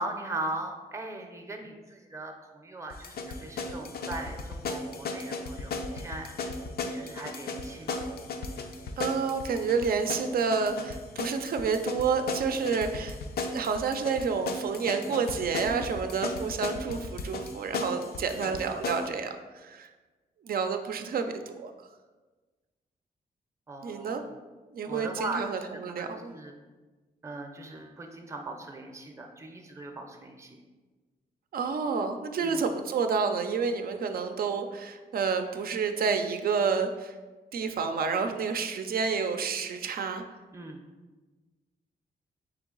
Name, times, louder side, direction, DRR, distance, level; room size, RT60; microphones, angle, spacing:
voice 1, 0.0-6.3 6.9-8.1 15.0-15.2 18.3-18.5 23.7-24.2 24.9-26.5 27.2-30.6 32.4-32.6 40.5-40.8, right 2 dB, 15° right, 4 dB, 0.6 m, -39 dB
sound 1, 2.9-19.1, left 3 dB, 70° left, 0.4 m, -36 dB
voice 2, 9.0-13.2 13.5-19.3 19.6-19.9 20.4-21.7 23.8-24.2 24.7-26.3 31.5-37.1 37.5-40.2, right 5 dB, 65° right, 7 dB, 0.4 m, -29 dB
3.8 x 3.3 x 3.7 m, 1.3 s
cardioid pair, 85°, 17 cm